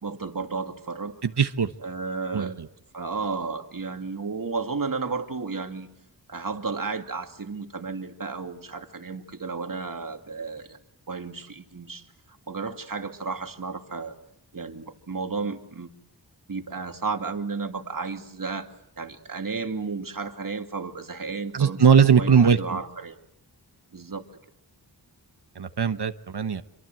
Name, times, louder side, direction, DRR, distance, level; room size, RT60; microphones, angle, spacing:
voice 1, 0.0-1.2 1.8-2.5 2.9-5.9 6.3-10.8 11.1-12.1 12.5-14.2 14.5-15.9 16.5-18.7 19.0-23.2 23.9-24.3, right 4 dB, 50° right, 6 dB, 2.3 m, -33 dB
voice 2, 1.2-1.7 2.3-2.7 21.5-22.8 25.6-26.6, right 7 dB, 70° right, 10 dB, 1.2 m, -20 dB
27.5 x 24.0 x 7.8 m, 0.77 s
wide cardioid pair, 95°, 41 cm